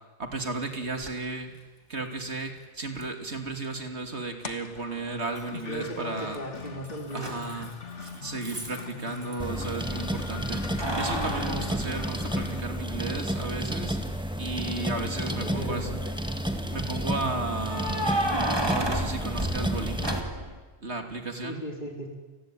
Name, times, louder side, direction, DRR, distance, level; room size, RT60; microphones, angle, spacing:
voice 1, 0.2-1.5 1.9-6.4 7.1-7.7 8.0-14.0 14.4-15.9 16.7-18.4 18.7-20.1 20.8-21.6, right 3 dB, 70° right, 5 dB, 3.1 m, -34 dB
Keys jangling, 1.0-1.1 3.0-3.1 5.4-5.9 6.2-9.4 10.6-12.8 13.2-13.3 15.1-15.7 17.6-20.6, right 1 dB, 20° right, 2.8 m, -32 dB
sound 1, 4.4-12.6, left 5 dB, 85° left, 1.9 m, -42 dB
voice 2, 5.7-7.7 15.0-16.1 21.4-22.1, equal, 40° left, 2 dB, 4.8 m, -37 dB
sound 2, 9.4-20.2, equal, 5° right, 2.1 m, -31 dB
29.0 x 20.5 x 9.2 m, 1.3 s
omnidirectional pair, 1.2 m